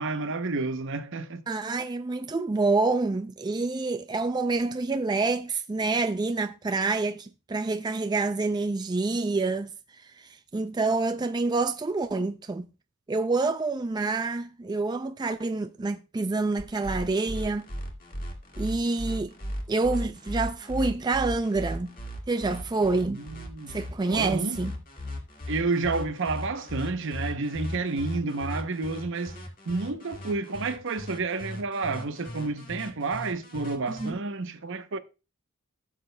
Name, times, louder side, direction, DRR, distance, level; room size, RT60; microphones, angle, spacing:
voice 1, 0.0-1.4 23.1-23.8 24.1-24.6 25.5-35.0, right 3 dB, 60° right, 0.7 m, -30 dB
voice 2, 1.5-12.7 13.1-17.7 18.6-19.3 19.7-21.9 22.3-23.2 23.7-24.7 33.9-34.2, right 3 dB, 20° right, 0.3 m, -27 dB
sound 1, 16.6-34.1, equal, 40° left, 1.9 m, -37 dB
16.0 x 7.4 x 2.2 m
head